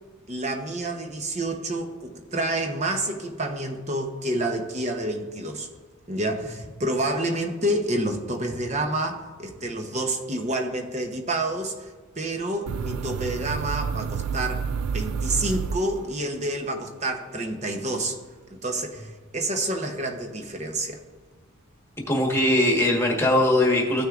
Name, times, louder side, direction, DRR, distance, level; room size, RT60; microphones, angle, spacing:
voice 1, 0.3-5.7 6.1-11.9 12.2-14.7 14.9-18.2 18.5-21.0, right 1 dB, 30° right, 5 dB, 0.8 m, -28 dB
sound 1, 12.7-16.4, right 6 dB, 85° right, 0.3 m, -29 dB
voice 2, 22.1-24.1, left 1 dB, 10° left, 0 dB, 1.4 m, -20 dB
14.0 x 6.3 x 2.5 m, 1.4 s
head